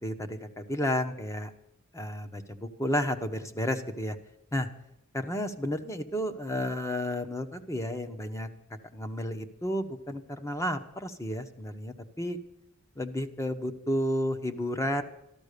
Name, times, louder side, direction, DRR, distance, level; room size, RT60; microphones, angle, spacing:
voice 1, 0.0-1.5 1.9-4.2 4.5-4.7 5.1-8.5 8.9-12.4 12.9-15.0, left 1 dB, 15° left, 8 dB, 1.1 m, -32 dB
14.0 x 12.5 x 6.7 m, 0.83 s
head